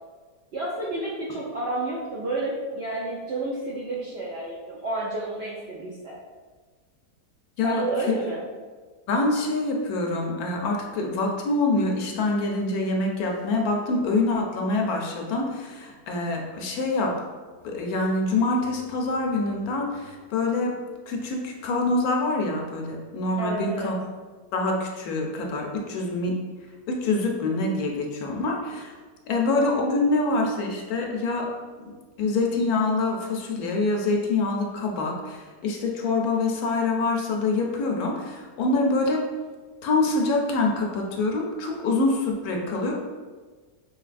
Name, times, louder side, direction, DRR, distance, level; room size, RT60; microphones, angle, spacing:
voice 1, 0.5-6.2 7.6-8.4 23.4-23.9, right 2 dB, 75° right, -5 dB, 0.6 m, -30 dB
voice 2, 9.1-17.2 17.6-20.8 21.1-23.9 24.5-26.4 26.9-28.9 29.3-31.5 32.2-39.2 39.8-42.9, left 2 dB, 75° left, 1 dB, 1.0 m, -25 dB
4.5 x 2.7 x 2.5 m, 1.4 s
omnidirectional pair, 1.7 m